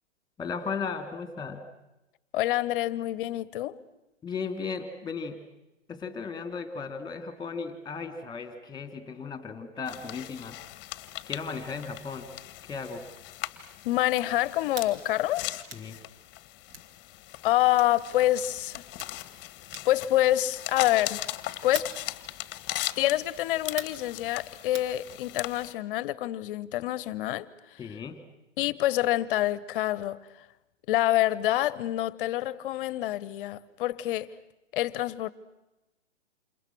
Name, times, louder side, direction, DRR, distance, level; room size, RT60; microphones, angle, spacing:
voice 1, 0.4-1.7 4.2-5.4 5.9-10.6 11.2-12.3 12.7-13.1 15.7-16.0 27.8-28.2, left 5 dB, 10° left, 3.2 m, -36 dB
voice 2, 2.3-3.8 13.8-15.5 17.4-18.8 19.8-21.2 21.6-21.9 23.0-27.5 28.6-30.2 30.9-34.3 34.7-35.3, left 14 dB, 45° left, 1.3 m, -26 dB
sound 1, 9.9-25.7, left 16 dB, 30° left, 1.6 m, -39 dB
sound 2, 14.7-14.9 15.7-15.9 16.7-16.9 17.7-18.0 18.7-19.1 19.7-20.0 20.8-21.1 21.7-22.0 22.7-22.9 23.8-24.1 24.7-24.9, right 5 dB, 50° right, 3.8 m, -41 dB
29.0 x 28.5 x 6.3 m
hypercardioid pair, 125°, 37 cm